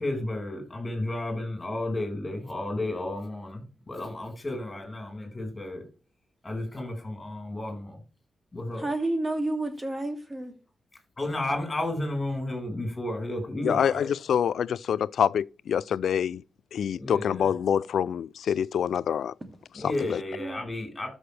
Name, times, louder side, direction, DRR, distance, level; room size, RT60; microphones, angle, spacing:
voice 1, 0.0-5.9 6.4-8.0 8.5-8.9 11.2-14.1 16.9-17.4 19.7-21.1, left 1 dB, 20° left, 4.8 m, -32 dB
voice 2, 8.8-10.5 20.4-20.7, right 2 dB, 20° right, 2.5 m, -30 dB
voice 3, 13.6-16.4 16.7-19.3 19.8-20.2, left 8 dB, 85° left, 0.3 m, -26 dB
13.0 x 6.3 x 3.3 m
wide cardioid pair, 125°, 0 cm